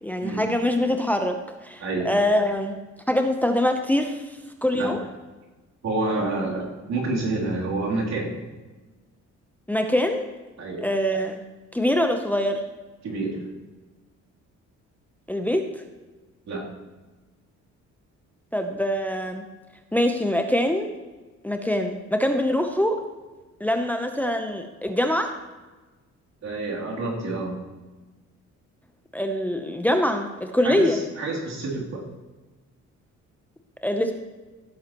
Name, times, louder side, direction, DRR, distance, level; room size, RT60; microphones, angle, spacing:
voice 1, 0.0-2.8 3.1-5.0 9.7-10.2 10.8-11.4 11.7-12.6 15.3-15.8 18.5-19.5 19.9-20.9 21.4-23.0 23.6-25.3 29.1-31.0 33.8-34.1, left 1 dB, 5° left, 5 dB, 0.8 m, -24 dB
voice 2, 5.8-8.3 10.6-10.8 13.0-13.4 16.5-16.6 26.4-27.6 30.6-32.0, right 2 dB, 60° right, -4 dB, 3.3 m, -28 dB
15.5 x 8.0 x 3.0 m, 1.2 s
cardioid pair, 90°, 30 cm